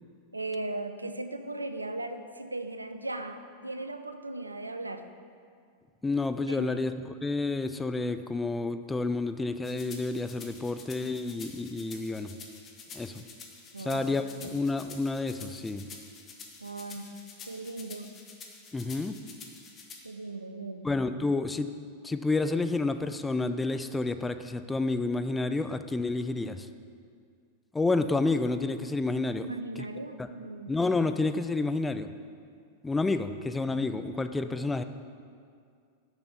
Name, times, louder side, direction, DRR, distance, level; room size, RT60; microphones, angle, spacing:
voice 1, 0.3-5.1 6.5-6.7 13.7-14.0 14.4-14.6 16.6-17.0 17.5-18.1 20.0-20.9 29.4-30.7, right 2 dB, 80° right, 8 dB, 0.4 m, -37 dB
voice 2, 6.0-12.3 12.9-13.1 13.8-14.2 14.5-15.8 18.7-19.2 20.8-21.7 22.0-26.7 27.7-29.5 29.8-29.9 30.7-32.1 32.8-34.8, left 3 dB, 10° left, 10 dB, 0.3 m, -29 dB
sound 1, 9.6-20.0, left 4 dB, 25° left, 1.1 m, -48 dB
6.9 x 6.0 x 6.8 m, 2.2 s
figure-of-eight pair, 90°, 0 cm